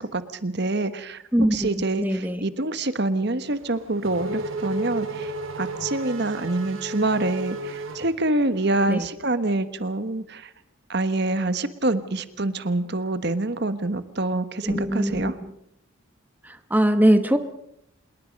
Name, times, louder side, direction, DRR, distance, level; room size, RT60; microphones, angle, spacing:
voice 1, 0.0-1.2 1.5-5.3 5.6-10.5 10.9-15.3, right 2 dB, 55° right, 12 dB, 1.3 m, -26 dB
voice 2, 1.3-2.4 8.9-9.1 14.6-15.3 16.4-17.4, right 1 dB, 10° right, 9 dB, 1.2 m, -22 dB
Race car auto racing / Accelerating revving vroom, 3.5-8.7, right 1 dB, 85° right, 4.5 m, -33 dB
27.0 x 21.5 x 5.3 m, 0.74 s
head